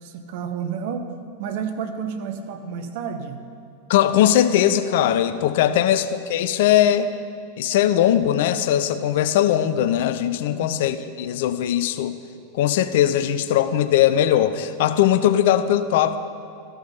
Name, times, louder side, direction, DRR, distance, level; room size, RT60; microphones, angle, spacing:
voice 1, 0.0-1.1 1.4-3.4 5.6-5.8 10.5-10.7, right 7 dB, 50° right, 7 dB, 0.8 m, -31 dB
voice 2, 3.9-7.1 7.6-12.2 12.5-16.2, left 11 dB, 55° left, 11 dB, 0.4 m, -20 dB
13.5 x 5.7 x 5.7 m, 2.4 s
figure-of-eight pair, 90°, 0 cm